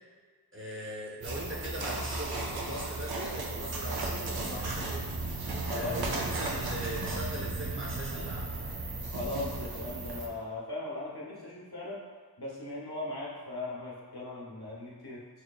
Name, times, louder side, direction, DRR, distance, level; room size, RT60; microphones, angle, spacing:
voice 1, 0.5-5.2 5.7-8.6, right 1 dB, 30° right, -4 dB, 0.8 m, -39 dB
sound 1, 1.2-10.3, right 2 dB, 70° right, 0.6 m, -35 dB
voice 2, 5.6-6.2 9.0-12.0 12.4-15.2, left 2 dB, 75° left, -5 dB, 0.9 m, -38 dB
3.8 x 3.2 x 2.3 m, 1.5 s
wide cardioid pair, 50°, 39 cm